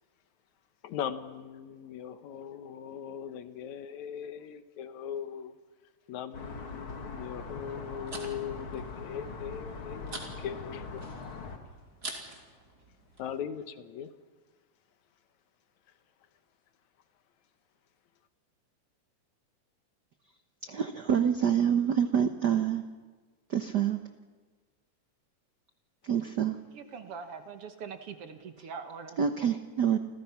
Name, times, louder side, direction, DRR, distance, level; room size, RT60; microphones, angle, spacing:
voice 1, 0.8-5.5 6.1-11.0 13.2-14.1, left 8 dB, 75° left, 10 dB, 2.4 m, -39 dB
sound 1, 6.3-11.6, left 4 dB, 45° left, 2.8 m, -41 dB
sound 2, 7.6-13.4, right 2 dB, 30° right, 3.5 m, -47 dB
voice 2, 20.6-22.8 23.5-24.0 26.0-26.6 29.2-30.0, right 8 dB, 80° right, 8 dB, 0.9 m, -27 dB
voice 3, 26.7-29.2, right 6 dB, 55° right, 7 dB, 2.1 m, -42 dB
30.0 x 26.0 x 5.9 m, 1.4 s
omnidirectional pair, 3.4 m